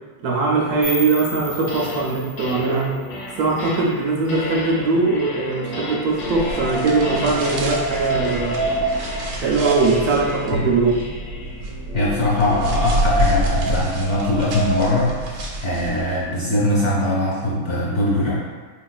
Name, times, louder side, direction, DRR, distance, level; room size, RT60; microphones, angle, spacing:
voice 1, 0.2-2.9 3.4-8.6 9.3-11.0, right 3 dB, 75° right, -3 dB, 1.0 m, -21 dB
sound 1, 0.8-3.7, left 1 dB, ahead, 0.5 m, -34 dB
sound 2, 1.4-2.1 2.4-12.8, left 2 dB, 75° left, 1.1 m, -33 dB
sound 3, 6.2-16.2, right 1 dB, 90° right, 1.3 m, -25 dB
voice 2, 11.9-18.3, left 1 dB, 40° left, -8 dB, 1.1 m, -21 dB
4.4 x 2.9 x 2.3 m, 1.4 s
omnidirectional pair, 1.8 m